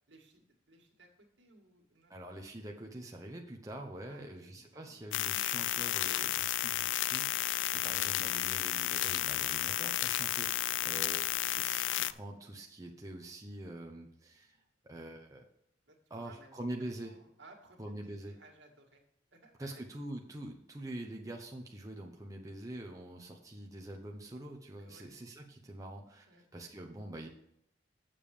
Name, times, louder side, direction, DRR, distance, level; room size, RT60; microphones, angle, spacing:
voice 1, 0.1-2.1 2.4-2.5 4.1-5.1 10.5-10.9 11.5-11.6 15.9-16.6 17.0-19.0 19.3-20.1 24.8-25.1 26.3-26.4, right 2 dB, 70° right, 1 dB, 2.1 m, -60 dB
voice 2, 2.1-11.3 11.5-14.6 14.8-15.4 16.1-17.1 17.8-18.3 19.6-27.3, right 1 dB, 20° right, 1 dB, 0.9 m, -45 dB
sound 1, 5.1-12.1, left 13 dB, 75° left, 0.4 m, -32 dB
7.4 x 7.1 x 5.1 m, 0.75 s
head